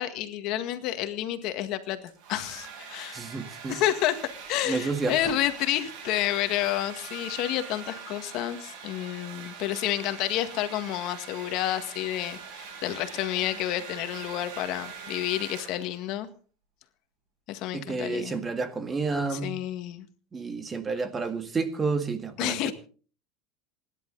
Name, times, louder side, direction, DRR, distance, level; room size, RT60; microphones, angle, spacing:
voice 1, 0.0-3.2 3.7-4.2 4.5-16.3 17.5-18.4 19.3-20.1 22.4-22.7, left 13 dB, 55° left, 1.8 m, -30 dB
Domestic sounds home sounds, 1.8-16.1, right 6 dB, 60° right, 7.5 m, -43 dB
voice 2, 3.1-3.8 4.7-5.4 17.7-19.6 20.3-22.7, right 4 dB, 20° right, 1.9 m, -30 dB
27.5 x 11.0 x 4.0 m
supercardioid pair, 140°, 0 cm